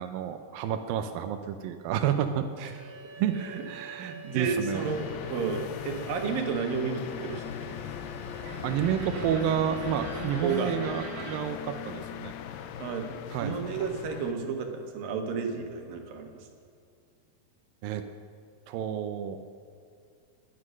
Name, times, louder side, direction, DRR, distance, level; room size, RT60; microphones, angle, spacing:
voice 1, 0.0-2.5 3.2-3.4 3.7-4.8 8.6-12.5 13.3-13.6 17.8-18.0 18.7-19.4, right 9 dB, 80° right, 7 dB, 2.1 m, -30 dB
sound 1, 2.7-11.4, right 2 dB, 45° right, 2.3 m, -43 dB
voice 2, 4.0-7.7 10.4-10.7 12.8-13.1 13.4-16.5, right 5 dB, 65° right, 3 dB, 3.0 m, -32 dB
sound 2, 4.7-14.3, left 9 dB, 85° left, 1.9 m, -39 dB
21.0 x 9.7 x 6.5 m, 2.3 s
omnidirectional pair, 4.8 m